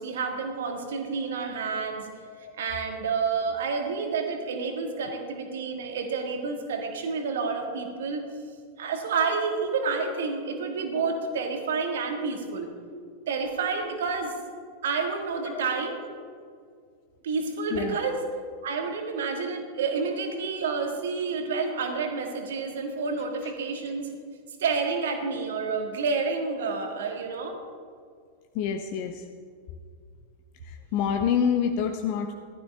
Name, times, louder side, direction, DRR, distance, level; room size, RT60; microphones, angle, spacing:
voice 1, 0.0-2.1 2.6-8.2 8.8-12.7 13.3-14.3 14.8-16.0 17.2-18.2 18.6-24.1 24.6-27.6, right 4 dB, 60° right, 4 dB, 1.8 m, -29 dB
voice 2, 28.5-29.2 30.6-32.3, left 7 dB, 45° left, 5 dB, 0.8 m, -27 dB
15.5 x 12.5 x 3.4 m, 2.1 s
figure-of-eight pair, 90°, 0 cm